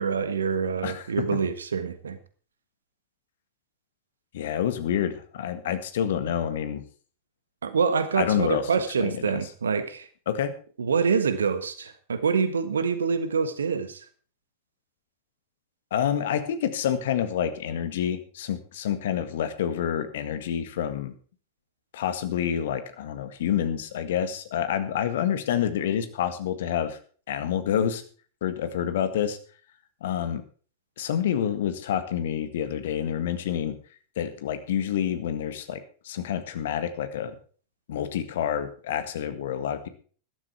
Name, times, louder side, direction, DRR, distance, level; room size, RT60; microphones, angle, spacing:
voice 1, 0.0-2.2 7.6-10.1 10.8-14.0, right 5 dB, 70° right, 12 dB, 1.4 m, -26 dB
voice 2, 4.3-6.8 8.2-8.6 9.0-9.4 10.3-10.5 15.9-21.1 21.9-27.0 27.3-28.0 28.4-29.4 30.0-30.4 31.0-33.8 34.2-37.4 37.9-39.9, left 9 dB, 60° left, 11 dB, 1.7 m, -28 dB
13.5 x 12.0 x 4.6 m, 0.41 s
figure-of-eight pair, 90°, 0 cm